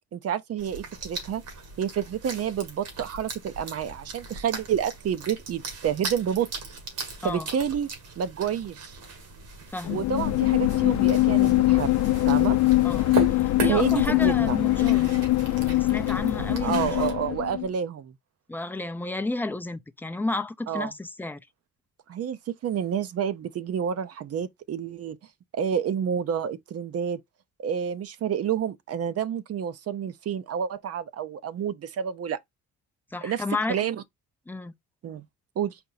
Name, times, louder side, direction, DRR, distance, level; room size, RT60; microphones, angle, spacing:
voice 1, 0.1-1.4 1.8-6.5 7.2-7.9 8.2-9.0 9.9-11.9 12.3-12.6 13.7-14.6 16.6-18.1 20.7-20.9 22.1-25.2 25.5-27.2 27.6-32.4 33.2-33.4 33.7-34.0 35.0-35.3 35.6-35.8, right 8 dB, 55° right, 0.6 m, -29 dB
sound 1, 0.6-17.1, right 3 dB, 80° right, 1.9 m, -37 dB
voice 2, 9.7-10.0 12.8-15.2 15.5-17.1 18.5-21.5 33.1-33.8 34.5-34.7, left 2 dB, 5° left, 0.5 m, -32 dB
sound 2, 9.8-17.7, left 17 dB, 65° left, 0.4 m, -22 dB
4.3 x 2.5 x 3.9 m
cardioid pair, 90°, 30 cm